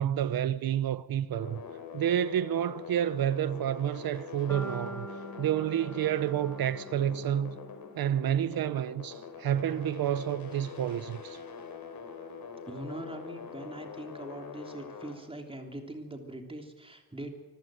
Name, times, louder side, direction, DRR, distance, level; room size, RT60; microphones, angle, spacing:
voice 1, 0.0-1.6 1.9-5.1 5.4-7.6 8.0-11.4, right 10 dB, 85° right, 0.8 m, -29 dB
sound 1, 1.3-15.1, left 6 dB, 75° left, 3.6 m, -44 dB
sound 2, 4.5-8.6, equal, 5° left, 3.1 m, -45 dB
voice 2, 12.7-17.3, right 1 dB, 15° right, 3.4 m, -42 dB
26.0 x 14.5 x 9.1 m
wide cardioid pair, 125°, 35 cm